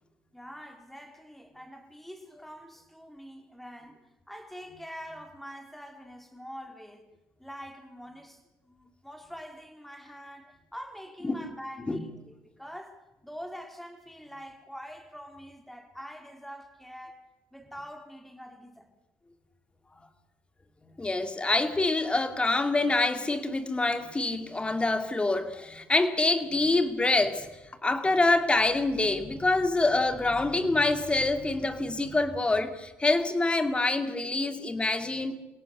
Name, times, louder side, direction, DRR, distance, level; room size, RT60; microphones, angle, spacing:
voice 1, 0.3-7.1 7.4-17.2 17.5-18.9, equal, 5° left, 3.8 m, -45 dB
voice 2, 21.0-35.4, left 2 dB, 20° left, 2.5 m, -26 dB
28.0 x 17.5 x 6.9 m
cardioid pair, 85°, 5 cm